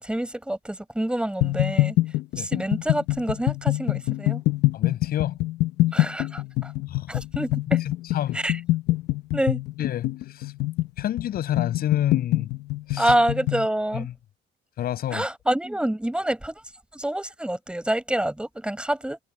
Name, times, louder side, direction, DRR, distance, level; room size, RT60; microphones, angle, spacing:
voice 1, 0.0-2.0 2.4-4.4 5.9-6.7 7.1-7.8 8.3-8.6 9.3-9.6 13.0-14.1 15.1-16.6 16.9-19.2, right 1 dB, 5° right, 5.8 m, -27 dB
sound 1, 1.4-13.7, left 18 dB, 85° left, 1.2 m, -24 dB
voice 2, 4.7-5.4 6.9-7.2 8.1-8.4 9.8-10.5 11.0-12.5 12.9-13.1 13.9-14.1 14.8-15.2, left 12 dB, 65° left, 6.8 m, -28 dB
cardioid pair, 110°, 17 cm